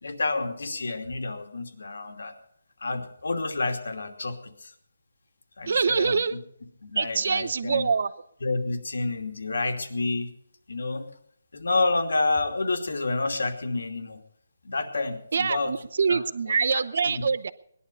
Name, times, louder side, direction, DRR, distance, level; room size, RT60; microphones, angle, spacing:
voice 1, 0.0-2.3 2.8-4.7 5.6-6.2 6.8-7.9 8.4-10.3 10.7-11.1 11.5-14.2 14.6-15.7 16.1-16.2 17.0-17.2, left 3 dB, 80° left, 5 dB, 2.7 m, -29 dB
voice 2, 5.7-6.4 7.0-8.1 15.3-17.5, right 5 dB, 50° right, 15 dB, 0.8 m, -25 dB
20.0 x 11.5 x 5.4 m, 0.67 s
hypercardioid pair, 175°, 0 cm